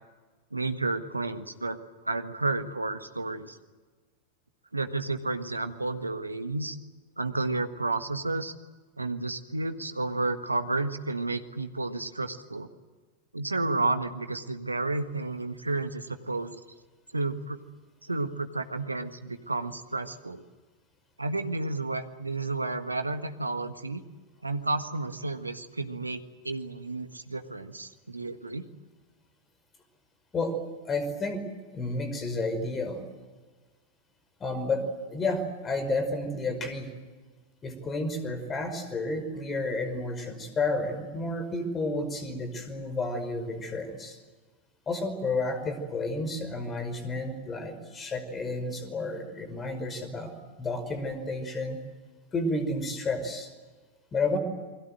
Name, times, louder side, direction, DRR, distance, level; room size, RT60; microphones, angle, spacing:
voice 1, 0.5-1.8 2.0-3.6 4.7-6.8 7.2-8.5 9.0-12.7 13.3-16.6 17.1-17.6 18.0-20.4 21.2-24.0 24.4-28.6, right 2 dB, 80° right, 9 dB, 1.6 m, -31 dB
voice 2, 30.8-31.4 31.7-33.0 34.4-34.8 35.1-36.9 37.6-44.2 44.9-50.3 50.6-51.8 52.3-53.5 54.1-54.4, left 2 dB, 20° left, 10 dB, 5.3 m, -31 dB
28.5 x 21.5 x 7.9 m, 1.4 s
figure-of-eight pair, 90°, 0 cm